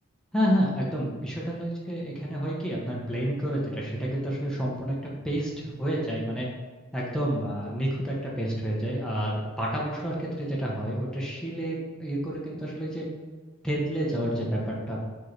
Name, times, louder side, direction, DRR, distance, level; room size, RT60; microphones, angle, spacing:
voice 1, 0.3-5.0 5.2-6.5 6.9-13.1 13.6-15.0, equal, 5° left, -5 dB, 0.7 m, -29 dB
4.4 x 3.0 x 3.1 m, 1.4 s
head